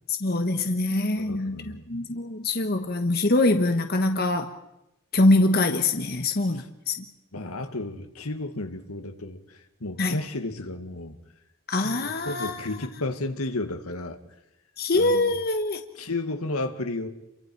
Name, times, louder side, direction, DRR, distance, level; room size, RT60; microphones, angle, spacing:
voice 1, 0.2-4.5 5.1-7.0 10.0-10.2 11.7-12.6 14.8-15.8, left 2 dB, 45° left, 1.2 m, -24 dB
voice 2, 1.2-1.8 6.5-6.6 7.3-11.2 11.8-14.2 14.9-15.3 16.0-17.1, left 2 dB, 80° left, 2.0 m, -33 dB
30.0 x 23.5 x 4.7 m
head